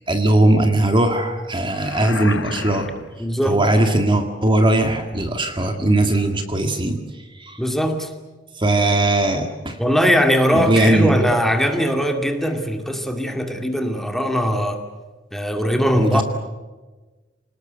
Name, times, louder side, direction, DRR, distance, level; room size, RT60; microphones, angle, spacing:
voice 1, 0.1-2.9 3.5-7.0 7.4-7.6 8.6-9.8 10.5-11.2 16.0-16.2, right 1 dB, 25° right, 5 dB, 2.0 m, -19 dB
sound 1, 1.7-3.3, left 4 dB, 85° left, 1.4 m, -32 dB
voice 2, 3.2-3.6 7.6-8.1 9.8-14.8 15.3-16.2, equal, ahead, 4 dB, 2.4 m, -20 dB
28.0 x 19.5 x 8.1 m, 1.2 s
head